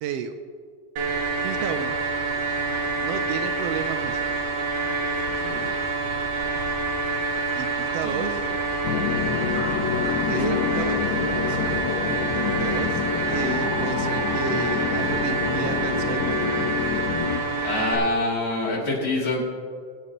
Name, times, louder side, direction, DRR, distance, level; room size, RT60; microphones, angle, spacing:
voice 1, 0.0-0.4 1.4-1.9 3.0-4.2 7.5-8.4 10.3-11.0 11.3-11.6 12.4-16.5, right 8 dB, 90° right, 8 dB, 1.4 m, -32 dB
sound 1, 1.0-18.0, right 3 dB, 60° right, 2.7 m, -27 dB
voice 2, 5.3-5.7 8.0-8.6 10.3-10.6 11.4-11.8 17.6-19.4, left 2 dB, 30° left, -5 dB, 2.8 m, -27 dB
sound 2, 8.8-17.4, left 8 dB, 80° left, 2.0 m, -27 dB
23.0 x 8.9 x 3.0 m, 2.1 s
omnidirectional pair, 3.4 m